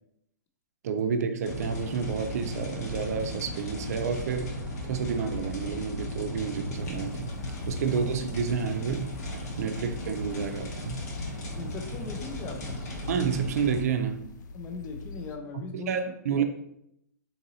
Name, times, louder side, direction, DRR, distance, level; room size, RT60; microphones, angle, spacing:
voice 1, 0.8-7.3 7.7-9.1 9.6-11.0 13.1-14.2 15.7-16.4, right 6 dB, 60° right, 7 dB, 0.4 m, -30 dB
sound 1, 1.4-13.8, left 1 dB, 60° left, 1.0 m, -36 dB
sound 2, 6.7-15.4, left 3 dB, 85° left, 0.4 m, -45 dB
voice 2, 11.6-12.8 14.5-15.9 16.4-16.5, left 4 dB, 15° left, 5 dB, 0.3 m, -39 dB
3.9 x 2.6 x 2.7 m, 0.77 s
hypercardioid pair, 155°, 10 cm